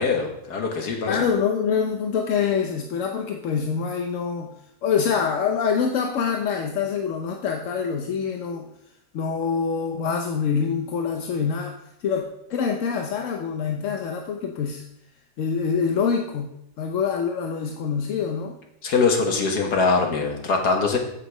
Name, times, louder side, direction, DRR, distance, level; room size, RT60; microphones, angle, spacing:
voice 1, 0.0-1.2 18.8-21.0, left 4 dB, 80° left, 2 dB, 1.8 m, -22 dB
voice 2, 1.1-4.5 4.8-8.7 9.1-14.8 15.4-16.5 16.8-18.6, left 6 dB, 60° left, 3 dB, 0.9 m, -25 dB
8.1 x 6.1 x 4.9 m, 0.79 s
omnidirectional pair, 1.7 m